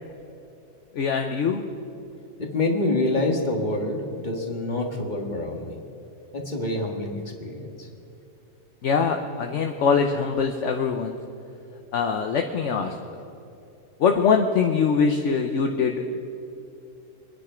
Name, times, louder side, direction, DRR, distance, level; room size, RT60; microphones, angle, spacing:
voice 1, 0.9-1.6 8.8-11.2 11.9-13.0 14.0-16.2, left 5 dB, 60° left, 4 dB, 1.1 m, -23 dB
voice 2, 2.4-5.8 6.3-7.7, left 2 dB, 30° left, 2 dB, 1.8 m, -27 dB
24.5 x 9.9 x 5.0 m, 2.7 s
omnidirectional pair, 1.5 m